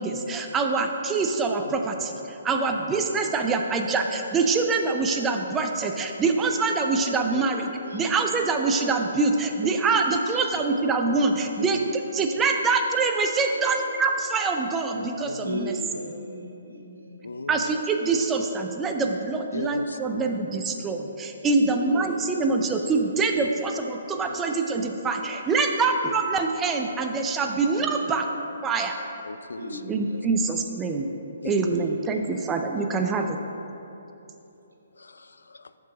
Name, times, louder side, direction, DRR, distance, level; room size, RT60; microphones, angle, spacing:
voice 1, 0.0-7.7 7.9-11.8 12.1-15.7 17.5-28.3 28.6-29.0 29.9-31.1 31.4-33.4, right 4 dB, 15° right, 4 dB, 0.5 m, -25 dB
voice 2, 1.6-2.0 2.7-2.8 3.1-3.2 7.3-7.5 8.0-8.2 11.1-11.2 11.7-11.9 12.2-12.3 14.9-15.5 17.2-17.8 18.1-18.2 19.5-20.3 22.4-22.6 23.4-23.5 26.3-26.4 29.3-29.9 31.4-31.6 35.0-35.7, left 3 dB, 75° left, 12 dB, 0.3 m, -39 dB
voice 3, 15.4-17.3 21.6-22.4 22.9-23.0 23.4-23.5 27.7-27.9 29.6-30.3 31.4-31.8 32.1-32.2, equal, 80° right, 0 dB, 1.2 m, -37 dB
7.3 x 5.5 x 4.9 m, 3.0 s
figure-of-eight pair, 135°, 0 cm